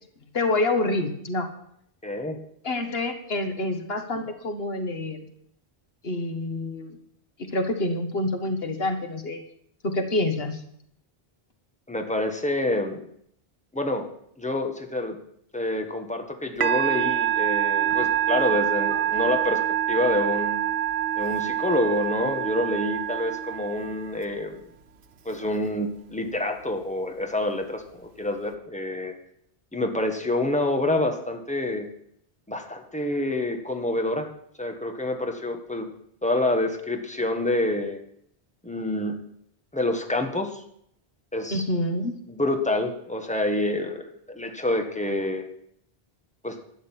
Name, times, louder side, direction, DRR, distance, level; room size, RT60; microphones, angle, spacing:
voice 1, 0.3-1.5 2.6-5.2 6.0-6.9 7.4-9.4 9.8-10.6 41.5-42.2, left 2 dB, 70° left, 6 dB, 1.8 m, -27 dB
voice 2, 2.0-2.4 11.9-13.0 13.7-14.0 14.4-15.2 15.5-19.6 19.9-20.6 21.2-24.6 25.2-29.1 29.7-31.9 32.5-34.3 34.6-35.9 36.2-38.0 38.6-39.2 39.7-40.6 41.3-41.6 42.3-45.4 46.4-46.6, left 1 dB, 5° left, 5 dB, 1.5 m, -27 dB
Musical instrument, 16.6-24.2, right 11 dB, 80° right, 1.1 m, -26 dB
12.0 x 6.6 x 9.0 m, 0.70 s
omnidirectional pair, 1.0 m